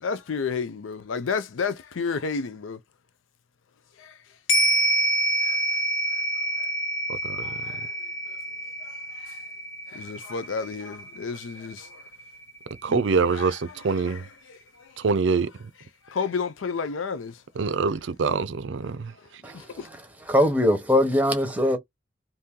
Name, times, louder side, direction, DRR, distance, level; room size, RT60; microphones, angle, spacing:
voice 1, 0.0-2.8 4.0-4.2 5.4-5.6 7.4-7.9 8.3-8.4 8.8-8.9 9.2-9.4 9.9-12.0 12.9-13.0 13.3-13.5 14.0-14.2 14.5-14.6 16.1-17.4 19.5-19.9, left 5 dB, 90° left, 0.5 m, -31 dB
sound 1, 4.5-13.1 13.4-13.5, right 1 dB, 65° left, 1.1 m, -27 dB
voice 2, 7.1-7.6 12.8-14.3 15.0-15.5 17.6-19.1, right 4 dB, 65° right, 0.4 m, -25 dB
voice 3, 20.3-21.8, left 1 dB, 10° right, 1.0 m, -21 dB
2.8 x 2.7 x 3.6 m
head